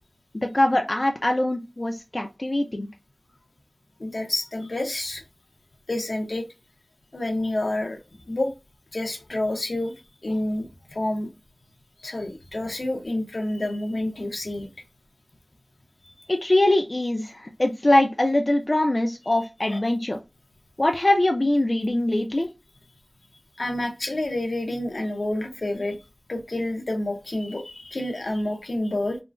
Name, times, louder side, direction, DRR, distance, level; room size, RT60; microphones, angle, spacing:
voice 1, 0.3-2.9 16.3-20.2 20.8-22.5, left 1 dB, 45° left, 4 dB, 0.4 m, -22 dB
voice 2, 4.0-5.2 5.9-6.4 7.1-8.0 8.3-8.5 8.9-9.9 10.2-11.3 12.0-14.7 19.7-19.8 23.6-26.0 26.3-29.2, left 1 dB, 75° left, 3 dB, 0.7 m, -28 dB
3.7 x 2.1 x 2.4 m, 0.24 s
wide cardioid pair, 55°, 0 cm